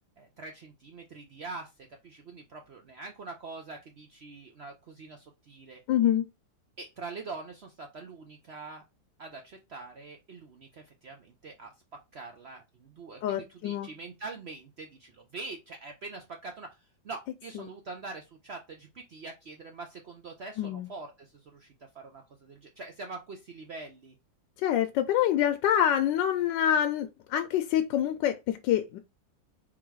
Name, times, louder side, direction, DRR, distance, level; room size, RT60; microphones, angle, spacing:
voice 1, 0.2-1.7 2.0-5.8 6.8-8.8 9.2-11.7 12.1-24.1, right 3 dB, 80° right, 0.5 m, -44 dB
voice 2, 5.9-6.3 13.2-13.9 17.5-17.7 20.6-20.9 24.6-29.0, left 10 dB, 80° left, 1.2 m, -26 dB
3.8 x 3.0 x 4.6 m
omnidirectional pair, 2.0 m